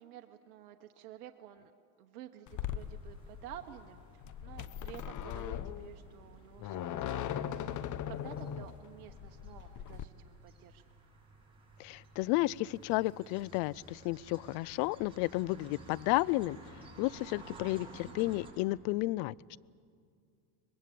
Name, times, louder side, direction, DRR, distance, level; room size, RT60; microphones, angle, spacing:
voice 1, 0.0-1.7 2.0-4.0 4.4-10.8, right 12 dB, 80° right, 5 dB, 1.2 m, -51 dB
sound 1, 2.5-10.0, left 10 dB, 40° left, 0.9 m, -39 dB
sound 2, 2.5-18.5, right 2 dB, 10° right, 7.2 m, -55 dB
voice 2, 11.8-16.6 17.0-19.3, left 20 dB, 60° left, 24 dB, 0.5 m, -32 dB
23.5 x 21.0 x 8.4 m, 2.3 s
supercardioid pair, 105°, 46 cm